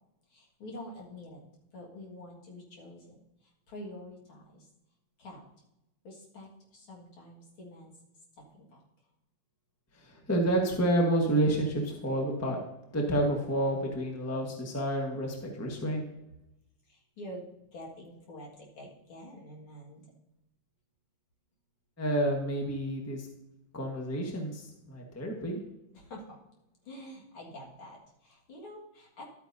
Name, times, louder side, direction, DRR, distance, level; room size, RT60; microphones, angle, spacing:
voice 1, 0.3-1.4 1.7-3.2 3.7-4.7 5.2-5.4 6.0-7.9 8.5-8.7 16.9-17.5 17.7-20.0 25.9-26.4 26.9-29.2, left 1 dB, 75° left, -3 dB, 2.8 m, -47 dB
voice 2, 9.9-12.6 12.9-16.1 22.0-23.3 23.7-25.6, right 1 dB, 10° left, 1 dB, 1.0 m, -29 dB
12.0 x 8.5 x 2.7 m, 0.89 s
omnidirectional pair, 2.3 m